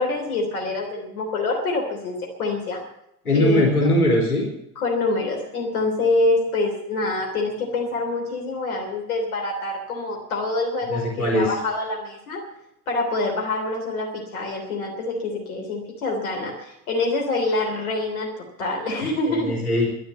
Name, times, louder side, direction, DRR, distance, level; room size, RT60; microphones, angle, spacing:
voice 1, 0.0-2.8 3.3-3.7 4.7-12.4 12.9-18.3 18.6-19.6, left 2 dB, 75° left, 1 dB, 3.4 m, -25 dB
voice 2, 3.2-4.5 10.8-11.5 19.3-19.9, left 1 dB, 90° left, -1 dB, 3.7 m, -20 dB
12.0 x 12.0 x 8.2 m, 0.80 s
figure-of-eight pair, 65°, 43 cm